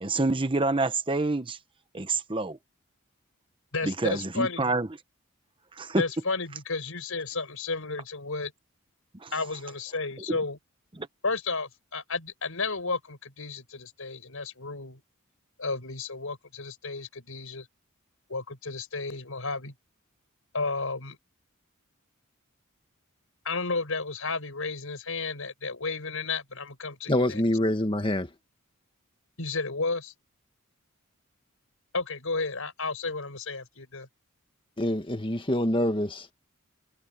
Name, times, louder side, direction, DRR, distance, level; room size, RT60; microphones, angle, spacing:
voice 1, 0.0-1.6 1.9-2.6 3.8-4.9 5.8-6.0 9.1-9.3 10.3-10.4 11.0-11.1, right 2 dB, 25° right, 1.0 m, -27 dB
voice 2, 3.7-4.8 5.9-8.5 9.3-10.6 11.2-15.0 15.6-17.7 18.3-19.7 20.5-21.2 23.4-27.4 29.4-30.1 31.9-34.1, left 3 dB, 70° left, 5.6 m, -32 dB
voice 3, 27.1-28.3 34.8-36.3, left 1 dB, 25° left, 1.9 m, -26 dB
head